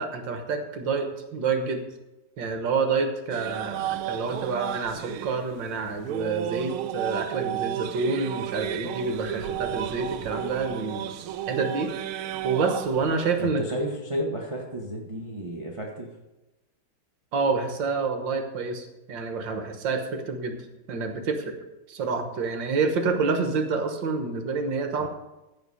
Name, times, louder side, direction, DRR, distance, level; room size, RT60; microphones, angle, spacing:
voice 1, 0.0-1.8 2.4-11.1 11.5-11.9 12.4-13.6 17.3-20.6 20.9-21.6 21.9-25.1, right 4 dB, 60° right, 6 dB, 1.8 m, -28 dB
sound 1, 3.3-13.5, right 12 dB, 80° right, 1.4 m, -33 dB
voice 2, 13.4-16.1 25.0-25.1, equal, 20° right, -1 dB, 1.0 m, -32 dB
15.0 x 5.0 x 6.3 m, 1.0 s
omnidirectional pair, 2.4 m